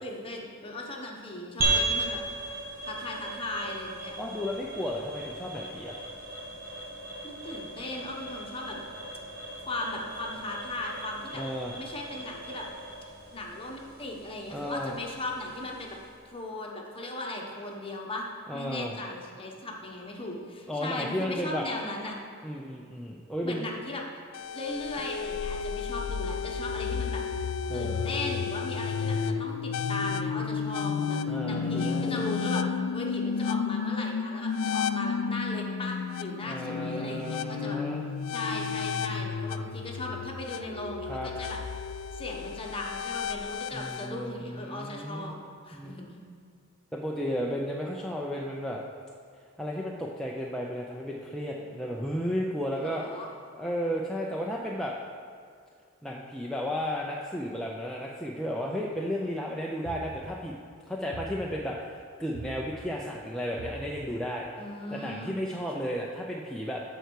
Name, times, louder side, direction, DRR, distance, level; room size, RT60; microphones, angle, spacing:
voice 1, 0.0-2.2 2.9-4.1 7.2-8.8 9.7-11.4 11.8-12.7 13.3-18.3 18.5-22.2 23.4-24.0 24.5-27.2 27.7-37.8 38.3-41.6 42.1-45.4 45.6-46.2 52.8-53.3 64.6-65.4, left 2 dB, 25° left, -1 dB, 1.1 m, -37 dB
sound 1, 1.6-16.2, right 2 dB, 45° right, 1.4 m, -36 dB
voice 2, 4.2-6.0 11.3-11.7 14.5-15.0 18.5-19.0 20.7-21.6 22.4-23.7 27.7-28.4 29.0-29.1 31.3-32.3 36.4-38.0 41.1-41.3 43.7-45.4 45.7-45.9 46.9-48.8 49.6-53.0 53.6-54.9 56.0-60.5 60.9-66.8, equal, ahead, -3 dB, 0.5 m, -33 dB
sound 2, 24.3-44.1, left 6 dB, 80° left, 0.4 m, -32 dB
sound 3, 59.8-60.5 61.1-61.8 62.3-63.0 63.6-64.2, right 2 dB, 75° right, 1.3 m, -43 dB
13.0 x 4.6 x 4.7 m, 2.1 s
head